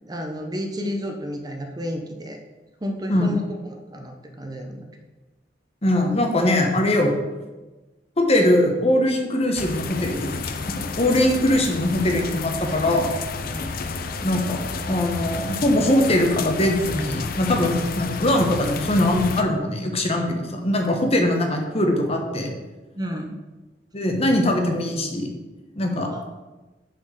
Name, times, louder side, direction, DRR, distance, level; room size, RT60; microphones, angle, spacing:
voice 1, 0.0-2.4 2.8-4.9 13.5-13.8 23.0-23.3 26.1-26.3, equal, 20° right, 4 dB, 0.7 m, -31 dB
voice 2, 5.8-7.1 8.2-10.5 11.0-13.1 14.2-14.6 14.9-22.5 23.9-25.3 25.8-26.1, left 1 dB, 35° left, 3 dB, 1.1 m, -21 dB
sound 1, 9.6-19.4, left 4 dB, 55° left, 0.5 m, -31 dB
6.4 x 4.4 x 6.6 m, 1.2 s
head